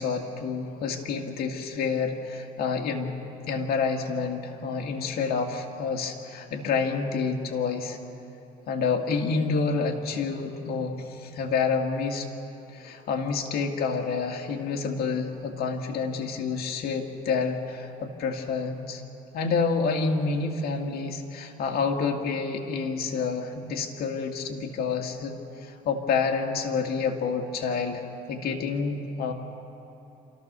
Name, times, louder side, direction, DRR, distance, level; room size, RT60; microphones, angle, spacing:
voice 1, 0.0-3.1 3.5-8.0 8.7-12.3 12.7-19.0 19.3-28.0 28.3-29.3, left 5 dB, 65° left, 2 dB, 2.1 m, -28 dB
28.0 x 14.0 x 6.8 m, 3.0 s
cardioid pair, 110°, 17 cm